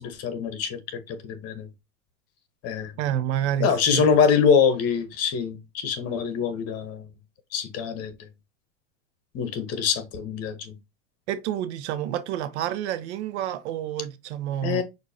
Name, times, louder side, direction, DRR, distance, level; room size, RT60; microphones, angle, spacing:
voice 1, 0.0-1.7 2.6-2.9 3.6-7.0 7.5-8.3 9.3-10.7 14.6-14.8, left 6 dB, 40° left, 1.2 m, -24 dB
voice 2, 3.0-4.1 11.3-14.8, right 11 dB, 65° right, 0.8 m, -29 dB
6.0 x 2.8 x 2.7 m
hypercardioid pair, 115°, 36 cm